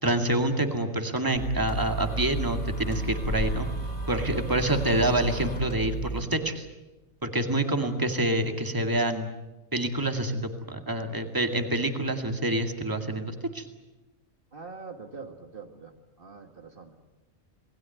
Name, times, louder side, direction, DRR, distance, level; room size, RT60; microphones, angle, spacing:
voice 1, 0.0-3.7 4.1-6.7 7.2-9.3 9.7-13.7, right 1 dB, 20° right, 5 dB, 2.2 m, -27 dB
sound 1, 1.3-6.2, right 1 dB, 50° left, 5.0 m, -33 dB
voice 2, 7.6-8.1 14.5-15.9 16.2-17.0, right 4 dB, 55° right, 4 dB, 2.0 m, -43 dB
28.0 x 20.0 x 9.4 m, 1.0 s
omnidirectional pair, 1.2 m